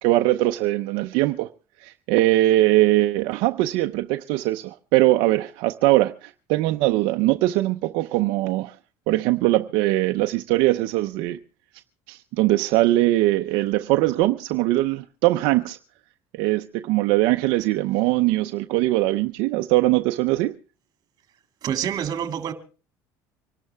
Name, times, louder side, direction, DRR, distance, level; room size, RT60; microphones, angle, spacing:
voice 1, 0.0-1.5 1.8-8.8 9.1-11.4 12.1-15.8 16.3-20.5, right 17 dB, 75° right, 0.7 m, -21 dB
voice 2, 21.6-22.5, right 9 dB, 45° right, 2.3 m, -27 dB
25.5 x 12.0 x 3.5 m
supercardioid pair, 110°, 9 cm